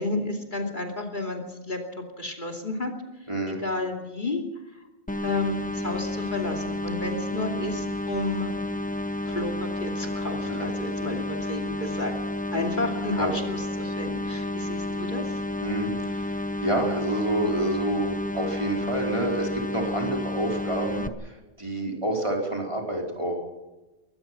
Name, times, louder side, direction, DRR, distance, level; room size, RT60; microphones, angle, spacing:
voice 1, 0.0-1.8 2.2-2.9 3.5-4.4 5.2-8.5 9.3-12.1 12.5-15.2, left 2 dB, 50° left, 2 dB, 3.0 m, -31 dB
voice 2, 3.3-3.6 10.4-10.7 13.2-13.3 15.6-23.4, right 1 dB, 30° right, 0 dB, 4.5 m, -28 dB
sound 1, 5.1-21.1, left 1 dB, 10° left, 0.8 m, -31 dB
23.0 x 19.0 x 6.0 m, 1.1 s
omnidirectional pair, 1.1 m